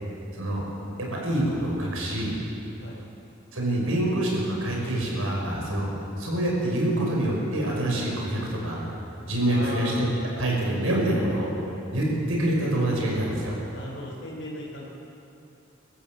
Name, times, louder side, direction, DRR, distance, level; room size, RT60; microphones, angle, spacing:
voice 1, 1.0-2.4 3.5-5.9 6.2-8.8 9.2-10.1 10.4-11.5 11.9-13.6, right 1 dB, 85° right, -2 dB, 6.0 m, -26 dB
voice 2, 9.4-10.0 13.7-14.9, left 1 dB, 55° left, -8 dB, 4.1 m, -37 dB
26.5 x 14.0 x 8.0 m, 2.8 s
head